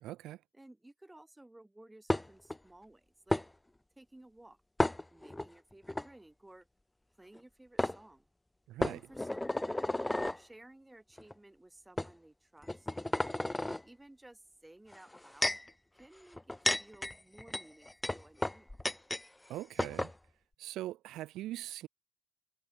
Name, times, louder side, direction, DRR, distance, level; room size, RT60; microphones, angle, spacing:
voice 1, 0.0-0.4 8.7-9.0 19.5-20.1 20.6-21.9, right 15 dB, 90° right, 0.5 m, -41 dB
voice 2, 0.5-3.4 4.0-4.6 5.1-6.7 7.2-8.3 8.9-10.0 10.3-13.4 13.8-18.9, right 1 dB, 10° right, 3.5 m, -57 dB
sound 1, 2.1-2.6 3.3-3.4 4.8-5.5 5.9-6.1 7.3-7.4 7.8-8.0 8.8-10.4 11.2-11.3 12.0-12.1 12.6-13.8 14.9-15.7 16.3-19.3 19.5-19.6 19.8-20.1, left 1 dB, 10° left, 0.6 m, -33 dB
cardioid pair, 90°, 0 cm